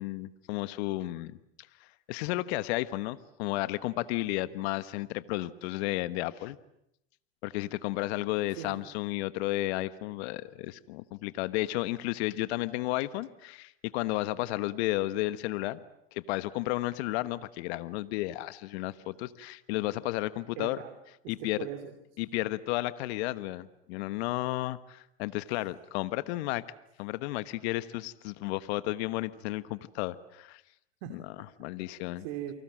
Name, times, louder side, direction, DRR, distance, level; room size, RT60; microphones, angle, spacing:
voice 1, 0.0-1.4 1.8-6.6 7.4-15.8 16.1-20.8 21.3-21.6 22.2-26.6 27.0-30.6 31.1-31.2 31.6-32.2, left 17 dB, 70° left, 14 dB, 1.3 m, -33 dB
voice 2, 8.5-8.9 20.6-20.9 21.2-21.9 31.0-31.7 32.2-32.5, right 11 dB, 65° right, 6 dB, 3.0 m, -41 dB
29.5 x 24.5 x 7.6 m, 0.79 s
hypercardioid pair, 95°, 34 cm